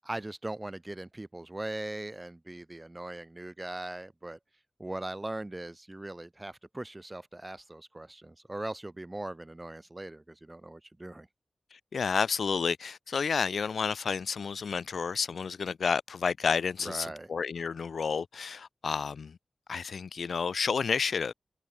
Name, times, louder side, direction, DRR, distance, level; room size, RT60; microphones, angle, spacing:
voice 1, 0.0-4.4 4.8-11.3 16.8-17.3, right 1 dB, 20° right, 7.9 m, -40 dB
voice 2, 11.7-19.4 19.7-21.3, left 5 dB, 85° left, 0.8 m, -30 dB
wide cardioid pair, 95°, 0 cm